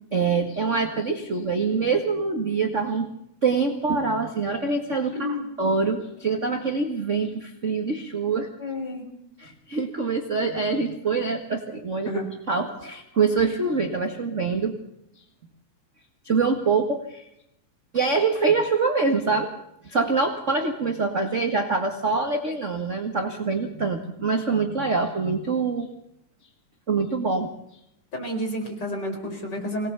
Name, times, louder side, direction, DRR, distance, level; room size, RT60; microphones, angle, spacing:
voice 1, 0.1-3.1 3.4-8.5 9.4-12.1 12.5-14.8 16.2-17.3 17.9-19.5 19.8-25.9 26.9-27.5, right 4 dB, 30° right, 4 dB, 1.6 m, -25 dB
voice 2, 5.1-5.5 8.6-9.1 12.1-12.3 28.1-29.9, left 1 dB, 35° left, 2 dB, 5.2 m, -30 dB
24.0 x 19.0 x 7.0 m, 0.78 s
omnidirectional pair, 3.4 m